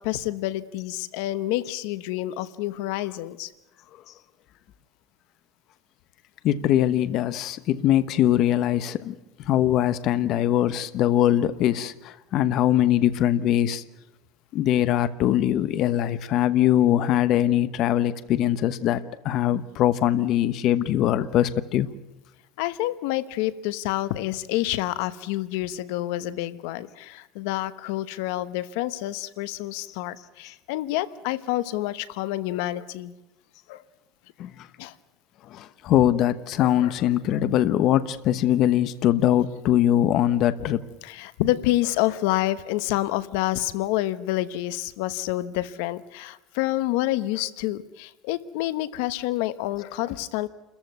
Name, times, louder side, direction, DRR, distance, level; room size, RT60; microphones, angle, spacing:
voice 1, 0.0-3.5 22.6-33.1 33.7-33.8 34.8-34.9 36.6-36.9 37.3-37.4 40.6-40.7 41.0-50.5, left 16 dB, 80° left, 15 dB, 1.0 m, -28 dB
voice 2, 6.4-13.8 14.5-21.9 34.4-34.7 35.5-40.8, left 12 dB, 50° left, 13 dB, 1.0 m, -22 dB
28.5 x 14.5 x 9.4 m, 0.98 s
cardioid pair, 145°, 0 cm